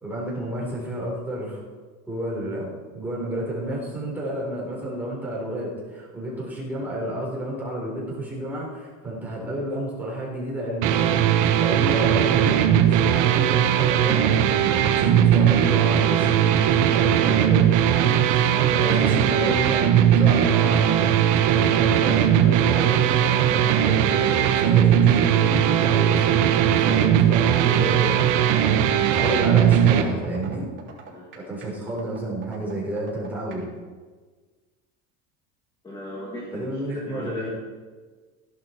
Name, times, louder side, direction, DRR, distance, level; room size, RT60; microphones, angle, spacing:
voice 1, 0.0-1.6 2.1-11.2 11.5-21.1 21.4-30.7 31.3-33.7 36.5-37.5, right 1 dB, 5° right, -5 dB, 4.2 m, -30 dB
sound 1, 10.8-30.0, right 10 dB, 60° right, 1.2 m, -19 dB
voice 2, 18.5-19.2 31.1-31.3 35.8-37.5, left 1 dB, 10° left, -4 dB, 2.0 m, -37 dB
sound 2, 28.2-33.6, right 8 dB, 35° right, 3.3 m, -43 dB
15.5 x 11.5 x 4.6 m, 1.4 s
cardioid pair, 155°, 36 cm